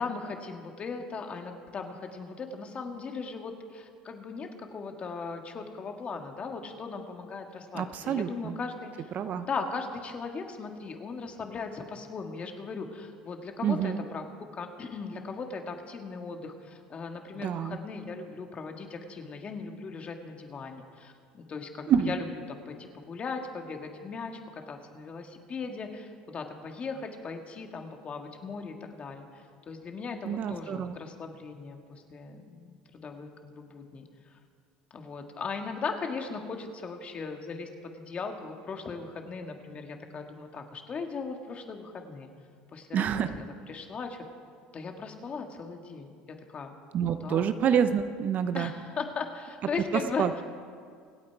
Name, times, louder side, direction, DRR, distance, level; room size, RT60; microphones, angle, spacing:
voice 1, 0.0-9.1 9.4-14.3 14.5-22.2 22.7-34.3 34.9-42.3 42.7-44.2 44.7-46.1 46.5-46.7 47.0-47.5 48.5-50.4, left 4 dB, 35° left, 4 dB, 1.8 m, -38 dB
voice 2, 7.7-8.6 9.1-9.5 13.6-14.0 17.4-17.8 21.9-22.2 30.2-31.0 42.9-43.3 46.9-48.7 50.2-50.3, right 8 dB, 45° right, 10 dB, 0.8 m, -27 dB
25.5 x 8.5 x 4.7 m, 2.1 s
supercardioid pair, 105°, 4 cm